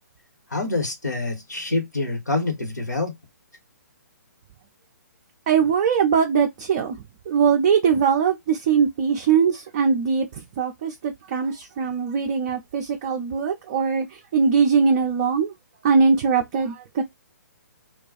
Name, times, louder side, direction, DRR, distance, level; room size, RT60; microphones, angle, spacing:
voice 1, 0.5-3.1, left 2 dB, 75° left, 1.2 m, -26 dB
voice 2, 5.5-6.9 7.3-10.3 10.6-15.5 15.8-17.0, right 6 dB, 30° right, 0.4 m, -21 dB
2.3 x 2.3 x 3.9 m
figure-of-eight pair, 130°, 10 cm